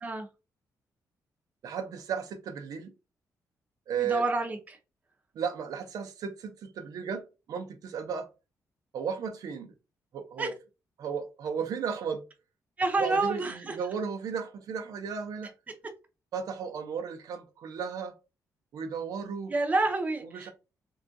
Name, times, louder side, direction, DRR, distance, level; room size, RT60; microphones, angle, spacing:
voice 1, 1.6-2.9 3.9-4.2 5.4-8.3 8.9-9.7 10.1-10.5 11.0-12.2 13.0-15.5 16.3-18.1 18.7-19.5 20.3-20.5, right 6 dB, 70° right, 0.5 m, -34 dB
voice 2, 4.0-4.8 10.4-10.5 12.8-13.8 15.7-15.8 19.5-20.5, right 2 dB, 25° right, 0.6 m, -28 dB
3.5 x 2.3 x 2.5 m
wide cardioid pair, 150°, 7 cm